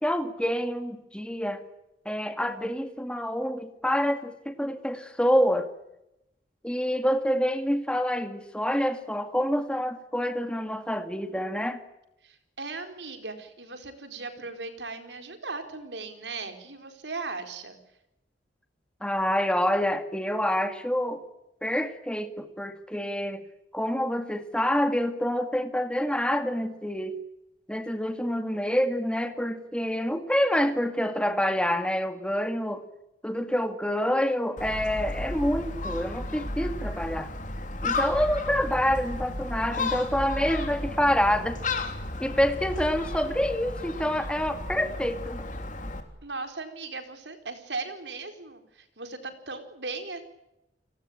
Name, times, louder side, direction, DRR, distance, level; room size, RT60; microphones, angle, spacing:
voice 1, 0.0-1.6 2.1-5.7 6.6-11.8 19.0-21.2 21.6-23.4 23.7-27.2 27.7-32.8 33.2-37.3 37.8-41.6 42.2-45.5, equal, 5° left, 8 dB, 2.1 m, -27 dB
voice 2, 12.2-17.8 46.2-50.2, right 3 dB, 80° right, 7 dB, 4.5 m, -38 dB
Gull seagull, 34.6-46.0, left 2 dB, 45° left, 3.4 m, -33 dB
29.5 x 18.5 x 8.7 m, 0.89 s
head